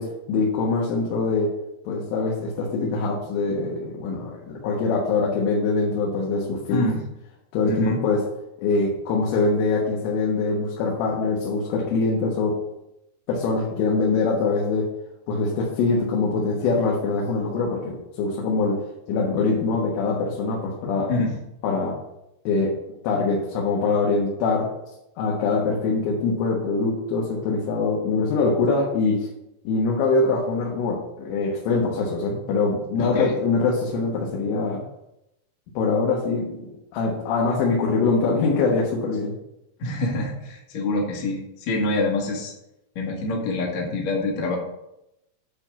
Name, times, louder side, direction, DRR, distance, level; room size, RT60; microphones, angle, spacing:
voice 1, 0.0-1.5 1.9-6.8 7.5-8.2 8.6-12.6 13.3-14.9 15.3-18.8 19.1-21.1 21.6-21.9 22.5-22.7 23.0-24.7 25.2-29.3 29.7-34.8 35.8-39.4, left 3 dB, 85° left, -3 dB, 3.9 m, -23 dB
voice 2, 6.7-7.0 7.6-8.0 21.1-21.4 33.0-33.3 39.8-42.5 43.0-44.6, left 2 dB, 60° left, -2 dB, 1.9 m, -26 dB
9.7 x 4.5 x 6.9 m, 0.88 s
omnidirectional pair, 5.5 m